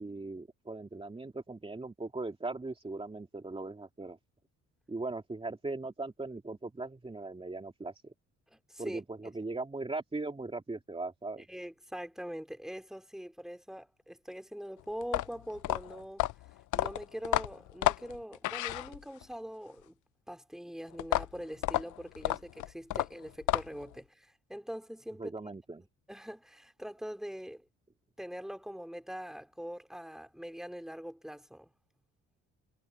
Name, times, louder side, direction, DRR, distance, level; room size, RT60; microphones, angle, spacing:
voice 1, 0.0-4.2 4.9-8.1 8.8-11.4 25.2-25.8, right 3 dB, 20° right, 2.8 m, -39 dB
voice 2, 8.5-9.0 11.5-16.2 16.7-20.0 20.3-25.3 26.1-27.6 28.2-31.7, equal, ahead, 4.1 m, -43 dB
sound 1, 15.0-19.3 21.0-23.9, left 16 dB, 80° left, 0.7 m, -31 dB
cardioid pair, 90°, 30 cm